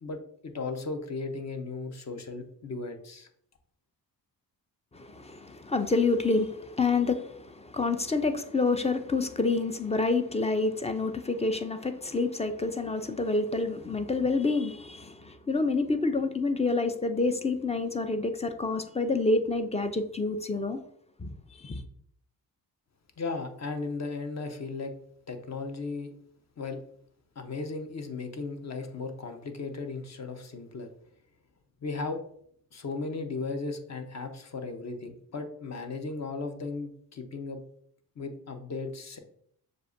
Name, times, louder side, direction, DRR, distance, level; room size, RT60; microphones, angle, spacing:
voice 1, 0.0-3.3 23.2-24.9 25.3-26.1 26.6-26.8 27.4-30.9 31.8-32.2 32.7-37.6 38.2-39.2, left 3 dB, 40° left, 0.8 m, -36 dB
voice 2, 4.9-20.8 21.2-21.8, left 3 dB, 15° left, 0.4 m, -28 dB
6.6 x 2.5 x 2.5 m
cardioid pair, 70°, 41 cm